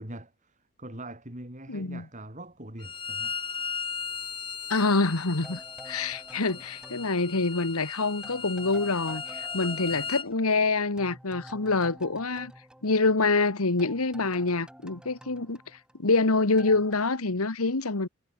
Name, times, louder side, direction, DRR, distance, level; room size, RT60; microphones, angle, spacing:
voice 1, 0.0-3.4 9.9-10.0, right 1 dB, 35° right, 5.7 m, -43 dB
voice 2, 1.7-2.0 4.7-12.5 12.8-15.6 16.0-18.1, left 3 dB, 85° left, 1.6 m, -26 dB
Bowed string instrument, 2.8-10.3, left 6 dB, 25° left, 1.2 m, -37 dB
sound 1, 5.4-7.9 8.2-13.5 13.8-16.3 16.6-16.9, equal, 5° right, 2.1 m, -49 dB
head